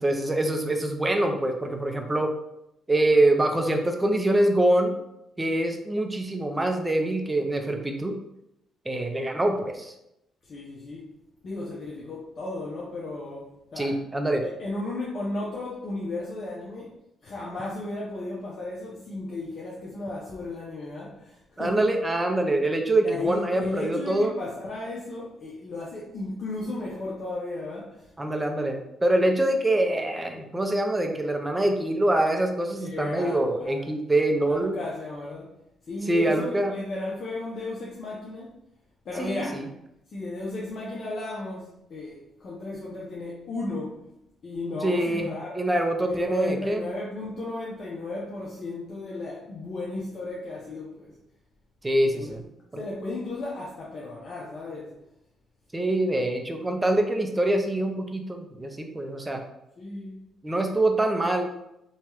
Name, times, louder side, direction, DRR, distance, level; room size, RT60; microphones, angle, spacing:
voice 1, 0.0-2.3 2.9-4.9 5.4-8.2 8.9-9.9 13.8-14.4 21.6-24.3 28.2-34.8 36.1-36.7 39.2-39.6 44.8-46.8 51.8-52.4 52.7-52.8 55.7-59.4 60.4-61.5, right 1 dB, 15° right, 4 dB, 0.4 m, -25 dB
voice 2, 10.4-11.1 11.4-14.0 14.4-16.9 17.2-21.9 23.0-28.1 32.7-33.8 34.4-35.5 35.8-38.5 39.0-39.7 40.1-44.0 44.4-45.6 46.1-51.2 52.2-52.4 52.8-54.9 59.8-60.2, left 2 dB, 55° left, -5 dB, 0.6 m, -34 dB
2.9 x 2.3 x 2.9 m, 0.84 s
cardioid pair, 90°, 0 cm